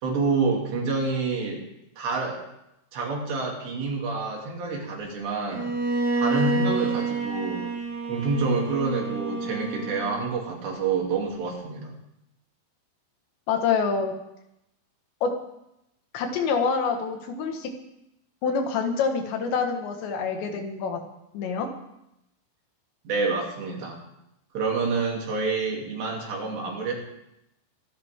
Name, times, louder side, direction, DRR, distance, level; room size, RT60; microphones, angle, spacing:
voice 1, 0.0-1.6 2.0-2.4 2.9-5.7 6.1-7.7 8.1-11.9 23.1-24.0 24.6-26.9, right 4 dB, 75° right, -2 dB, 5.2 m, -28 dB
Bowed string instrument, 5.5-10.5, right 3 dB, 25° right, 2.5 m, -28 dB
voice 2, 13.5-14.1 15.2-15.3 16.1-17.7 18.4-21.0 21.3-21.7, left 5 dB, 85° left, 4 dB, 4.0 m, -26 dB
24.0 x 12.0 x 3.7 m, 0.84 s
omnidirectional pair, 5.0 m